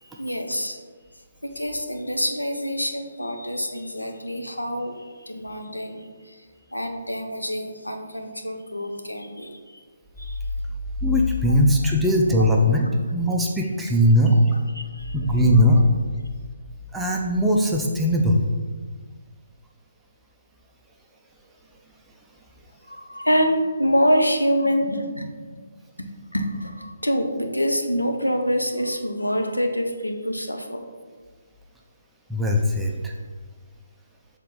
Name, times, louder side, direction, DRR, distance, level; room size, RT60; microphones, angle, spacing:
voice 1, 0.0-0.8 1.4-6.4 6.7-9.8 10.2-10.4 14.3-15.3 22.9-25.5 26.0-30.8, equal, 85° left, 4 dB, 0.8 m, -26 dB
voice 2, 11.0-12.8 13.1-14.4 15.1-15.8 16.9-18.4 32.3-33.1, equal, 5° right, -2 dB, 0.5 m, -19 dB
6.6 x 3.6 x 4.0 m, 1.5 s
figure-of-eight pair, 140°, 0 cm